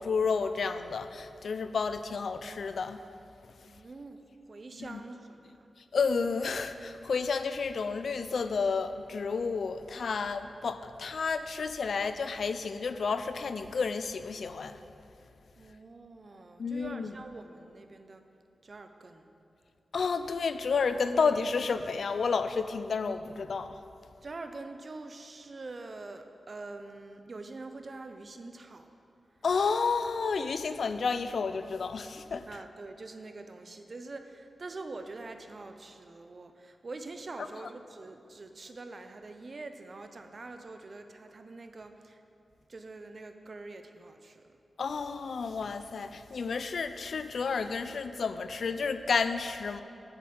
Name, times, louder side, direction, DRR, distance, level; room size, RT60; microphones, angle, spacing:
voice 1, 0.0-3.0 4.9-5.0 5.9-14.8 16.6-17.1 19.9-23.8 29.4-32.5 44.8-49.8, left 5 dB, 70° left, 11 dB, 0.5 m, -31 dB
voice 2, 3.6-5.7 15.6-18.2 18.6-19.3 24.2-28.9 32.5-42.2 42.7-44.6, right 3 dB, 45° right, 7 dB, 0.7 m, -45 dB
8.1 x 7.3 x 7.7 m, 2.7 s
wide cardioid pair, 110°, 0 cm